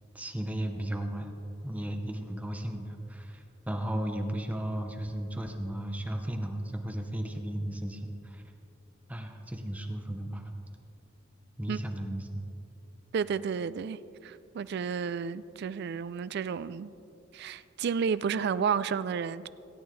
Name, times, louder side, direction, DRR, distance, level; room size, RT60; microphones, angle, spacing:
voice 1, 0.1-1.3 1.6-8.4 9.1-10.4 11.6-12.5, right 1 dB, 5° right, 0.7 m, -35 dB
voice 2, 13.1-16.9 17.3-19.5, right 6 dB, 55° right, 0.3 m, -31 dB
17.0 x 8.8 x 3.2 m
head